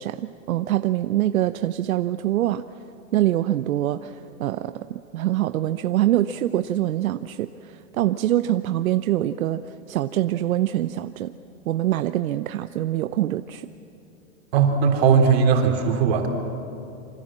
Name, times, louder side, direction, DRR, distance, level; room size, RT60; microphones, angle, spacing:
voice 1, 0.0-2.6 3.1-9.6 9.9-11.3 11.7-13.7, right 13 dB, 80° right, 11 dB, 0.8 m, -24 dB
voice 2, 14.5-16.3, right 6 dB, 45° right, 3 dB, 3.6 m, -18 dB
27.0 x 25.5 x 7.5 m, 2.8 s
supercardioid pair, 170°, 41 cm